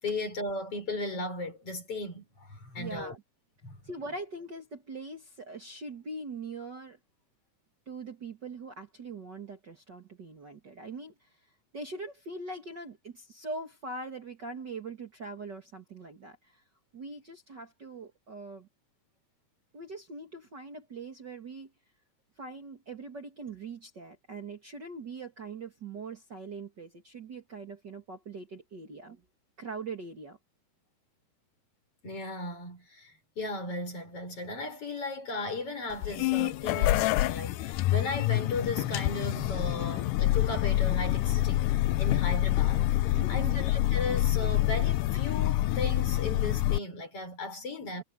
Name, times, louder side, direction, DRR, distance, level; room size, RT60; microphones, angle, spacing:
voice 1, 0.0-3.2 3.6-3.8 32.0-42.9 43.3-48.0, left 2 dB, 45° left, 6.6 m, -36 dB
voice 2, 2.8-3.2 3.8-7.0 7.9-11.4 11.7-16.6 16.9-18.7 19.7-21.7 22.4-29.2 29.6-30.4 43.1-43.7, right 3 dB, 35° right, 2.4 m, -42 dB
sound 1, 35.9-46.8, left 15 dB, 85° left, 2.3 m, -27 dB
omnidirectional pair, 3.6 m